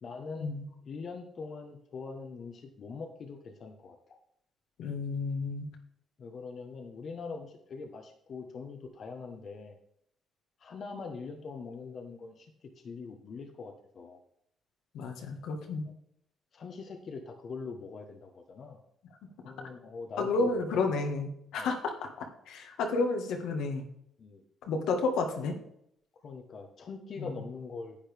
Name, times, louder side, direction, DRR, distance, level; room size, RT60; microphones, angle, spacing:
voice 1, 0.0-0.6 0.8-4.0 6.2-9.8 10.6-14.2 16.5-18.8 19.4-20.5 21.6-21.8 24.2-24.4 26.2-28.0, left 4 dB, 55° left, 4 dB, 1.2 m, -43 dB
voice 2, 4.8-5.7 14.9-15.8 20.2-21.9 22.2-23.8 24.6-25.5 27.2-27.3, left 3 dB, 85° left, 3 dB, 1.6 m, -31 dB
10.5 x 8.7 x 3.5 m, 0.73 s
cardioid pair, 90°, 0 cm